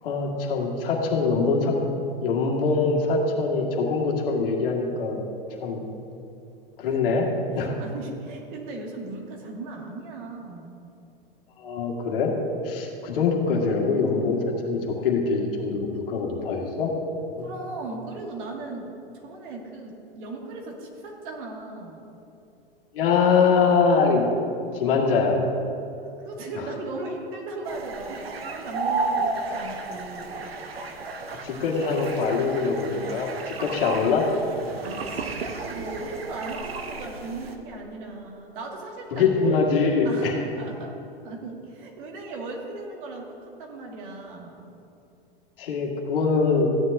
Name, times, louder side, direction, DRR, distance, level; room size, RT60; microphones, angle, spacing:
voice 1, 0.0-1.8 2.2-5.2 5.6-5.8 6.8-7.3 7.6-7.8 11.6-12.3 12.6-16.9 17.4-17.5 22.9-24.3 24.7-25.4 31.4-34.3 39.1-40.3 45.6-46.7, left 4 dB, 65° left, -1 dB, 1.9 m, -23 dB
voice 2, 7.5-10.8 17.4-22.1 26.2-30.5 34.8-39.5 40.0-41.0 41.2-44.6, right 2 dB, 55° right, 0 dB, 2.0 m, -37 dB
sound 1, 27.7-37.6, right 3 dB, 80° right, 0.9 m, -33 dB
15.5 x 9.7 x 2.6 m, 2.8 s
figure-of-eight pair, 95°, 30 cm